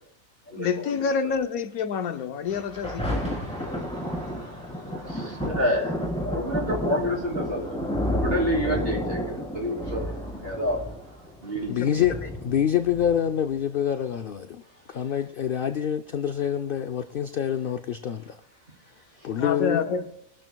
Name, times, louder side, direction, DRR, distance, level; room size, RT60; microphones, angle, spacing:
voice 1, 0.5-3.9 11.6-12.0 19.4-20.0, left 6 dB, 80° left, 1.2 m, -29 dB
Thunder, 2.5-13.5 14.1-14.2, equal, 5° left, 3.4 m, -31 dB
voice 2, 4.9-7.8 8.2-9.2 9.5-10.0 10.4-10.8 11.4-11.7, equal, 40° right, 3.7 m, -28 dB
voice 3, 11.7-14.6 14.9-18.3 19.2-19.8, left 9 dB, 60° left, 0.5 m, -26 dB
23.5 x 12.0 x 2.3 m
omnidirectional pair, 1.5 m